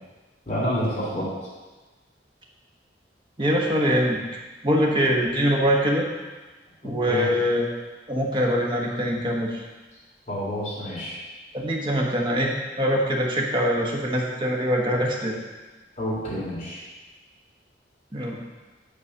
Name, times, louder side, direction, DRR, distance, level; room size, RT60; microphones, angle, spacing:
voice 1, 0.5-1.2 7.0-7.3 10.3-11.2 16.0-16.8, equal, 40° left, -8 dB, 3.1 m, -28 dB
voice 2, 3.4-4.2 4.6-6.1 6.8-7.7 8.1-9.6 11.5-15.4 18.1-18.4, equal, 25° right, -2 dB, 1.2 m, -23 dB
8.6 x 4.0 x 6.6 m, 1.2 s
head